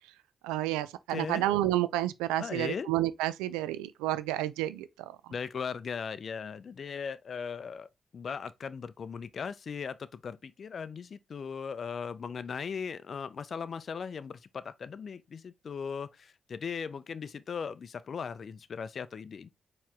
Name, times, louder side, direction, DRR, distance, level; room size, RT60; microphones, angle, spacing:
voice 1, 0.4-5.1, right 14 dB, 85° right, 0.3 m, -30 dB
voice 2, 1.1-1.4 2.4-2.9 5.3-19.5, left 6 dB, 60° left, 0.4 m, -38 dB
4.6 x 3.1 x 3.5 m
hypercardioid pair, 40°, 0 cm